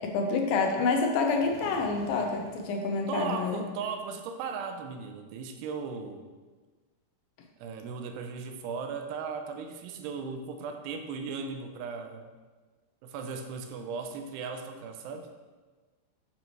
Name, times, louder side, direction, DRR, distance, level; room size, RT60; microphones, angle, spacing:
voice 1, 0.0-3.6, left 4 dB, 75° left, 2 dB, 2.3 m, -28 dB
sound 1, 1.2-2.8, left 1 dB, 50° left, 2.0 m, -47 dB
voice 2, 3.1-6.3 7.6-12.3 13.0-15.3, right 5 dB, 90° right, 5 dB, 2.7 m, -37 dB
9.9 x 6.9 x 3.3 m, 1.3 s
omnidirectional pair, 4.8 m